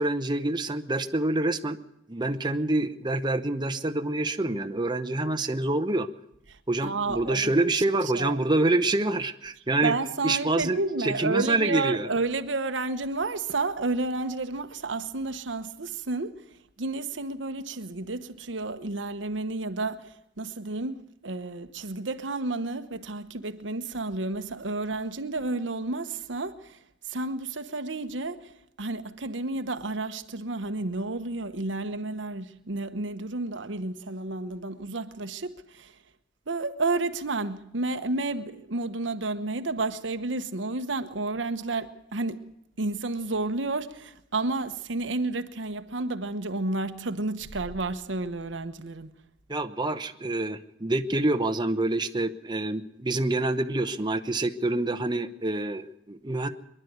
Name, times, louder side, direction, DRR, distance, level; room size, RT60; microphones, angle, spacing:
voice 1, 0.0-1.8 2.1-6.1 6.7-9.9 10.2-12.1 49.5-56.5, right 2 dB, 25° right, 0.9 m, -26 dB
voice 2, 6.8-7.8 8.2-8.4 9.8-16.5 16.8-26.8 27.1-35.9 36.5-42.5 42.8-49.1, right 3 dB, 85° right, 1.1 m, -31 dB
24.0 x 11.5 x 9.4 m
head